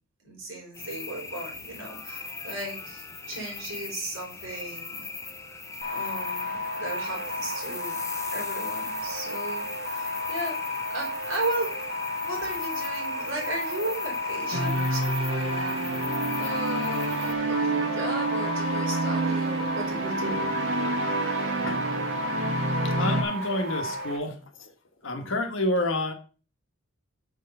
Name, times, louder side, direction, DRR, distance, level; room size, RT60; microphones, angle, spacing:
voice 1, 0.2-5.1 5.4-5.6 5.9-8.0 8.3-10.6 10.9-11.8 12.2-15.8 16.4-20.4, right 2 dB, 65° right, 0 dB, 4.4 m, -35 dB
sound 1, 0.7-17.3, left 4 dB, 15° left, 0.7 m, -40 dB
sound 2, 5.8-24.2, left 2 dB, 40° right, 2.4 m, -33 dB
sound 3, 14.5-23.2, right 2 dB, 85° right, 1.7 m, -28 dB
voice 2, 21.7-22.1 22.8-24.7 25.0-26.1, left 1 dB, 65° left, 5 dB, 1.5 m, -29 dB
6.6 x 6.5 x 5.4 m, 0.37 s
head